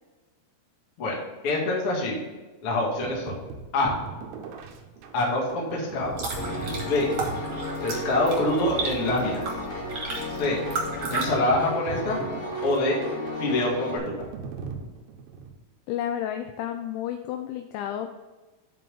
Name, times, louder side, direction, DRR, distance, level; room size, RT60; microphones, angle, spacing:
voice 1, 1.4-2.2 2.6-3.4 3.7-3.9 5.1-6.1 6.8-7.1 7.8-9.4 10.4-10.6 11.1-12.2 12.6-13.0 13.4-14.2, left 2 dB, 50° left, -3 dB, 1.7 m, -25 dB
sound 1, 3.0-15.6, right 5 dB, 75° right, 2.9 m, -40 dB
sound 2, 5.9-11.3, right 3 dB, 50° right, 2.0 m, -34 dB
Piano, 6.4-14.0, left 1 dB, 70° left, 4.7 m, -34 dB
voice 2, 15.9-18.1, left 10 dB, 90° left, 6 dB, 2.6 m, -31 dB
9.8 x 4.6 x 5.4 m, 1.2 s
omnidirectional pair, 5.8 m